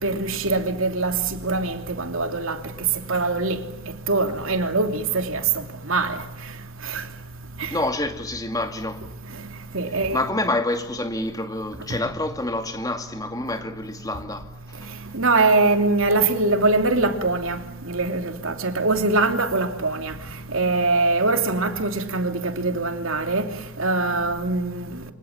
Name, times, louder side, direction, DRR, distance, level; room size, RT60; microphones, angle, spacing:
voice 1, 0.0-1.2 1.4-2.6 3.1-3.6 4.1-5.4 5.9-6.1 6.9-7.0 7.6-7.7 9.7-10.2 15.1-17.6 17.9-20.1 20.5-23.5 23.8-24.9, right 3 dB, 70° right, 3.0 m, -22 dB
voice 2, 7.7-9.0 10.1-15.0, left 2 dB, 15° left, 2.4 m, -28 dB
28.5 x 25.0 x 7.4 m
head